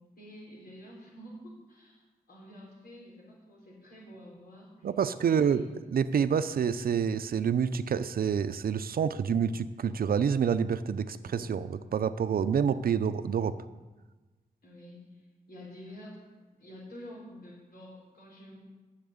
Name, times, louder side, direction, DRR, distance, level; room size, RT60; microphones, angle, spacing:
voice 1, 0.0-4.9 5.3-5.6 11.1-11.5 14.6-18.6, left 1 dB, 85° left, -4 dB, 4.9 m, -49 dB
voice 2, 4.8-5.6 5.9-13.5, right 7 dB, 75° right, 12 dB, 0.5 m, -28 dB
10.5 x 7.4 x 8.7 m, 1.2 s
wide cardioid pair, 175°, 15 cm